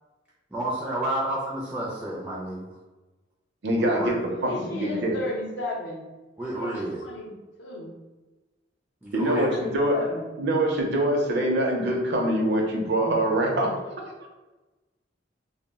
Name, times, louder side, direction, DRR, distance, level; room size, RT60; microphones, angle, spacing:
voice 1, 0.5-2.7 3.8-4.2 6.4-7.0 9.0-9.6, right 1 dB, 10° right, -6 dB, 0.4 m, -30 dB
voice 2, 3.6-4.1 4.4-5.2 9.1-10.0 10.4-13.7, right 1 dB, 65° right, 1 dB, 0.5 m, -24 dB
voice 3, 4.3-6.0 6.5-7.3 7.6-7.9 9.2-10.3, left 2 dB, 65° left, -1 dB, 0.5 m, -34 dB
2.2 x 2.0 x 3.4 m, 1.1 s
head